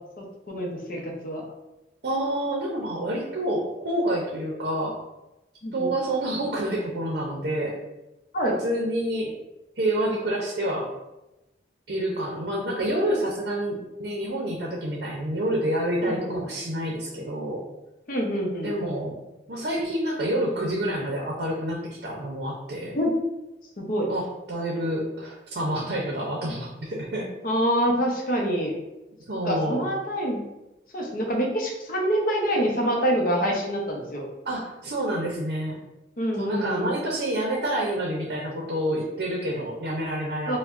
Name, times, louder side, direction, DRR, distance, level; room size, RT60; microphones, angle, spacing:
voice 1, 0.2-1.4 5.6-5.9 8.3-8.6 16.1-16.4 18.1-18.7 22.9-23.1 23.8-24.1 27.4-28.7 29.4-30.4 30.9-34.3 36.2-37.0 40.5-40.6, equal, 50° left, 0 dB, 0.7 m, -26 dB
voice 2, 2.0-5.0 5.7-7.8 8.6-9.4 9.8-10.9 11.9-17.7 18.6-19.2 19.5-23.0 24.1-27.3 29.3-29.9 34.4-35.8 36.4-40.6, right 1 dB, 65° right, -2 dB, 0.6 m, -28 dB
4.7 x 2.1 x 2.4 m, 0.96 s
head